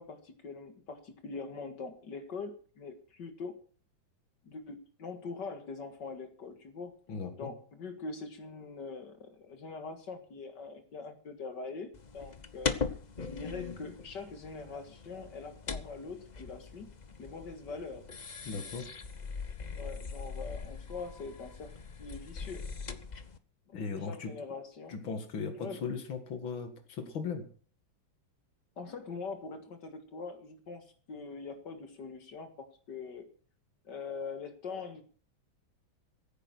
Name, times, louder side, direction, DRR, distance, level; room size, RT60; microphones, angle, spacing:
voice 1, 0.0-3.5 4.4-6.9 7.4-12.8 13.2-16.9 17.2-18.0 19.7-21.7 22.0-22.6 23.7-23.8 24.1-25.0 25.5-25.8 28.8-33.3 33.8-35.0, left 4 dB, 60° left, 8 dB, 2.4 m, -43 dB
voice 2, 7.1-7.5 18.5-18.8 23.7-24.3 24.9-27.4, left 5 dB, 80° left, 7 dB, 2.8 m, -37 dB
sound 1, 11.9-23.4, left 5 dB, 35° left, 0.8 m, -41 dB
16.0 x 9.7 x 6.1 m, 0.43 s
omnidirectional pair, 2.1 m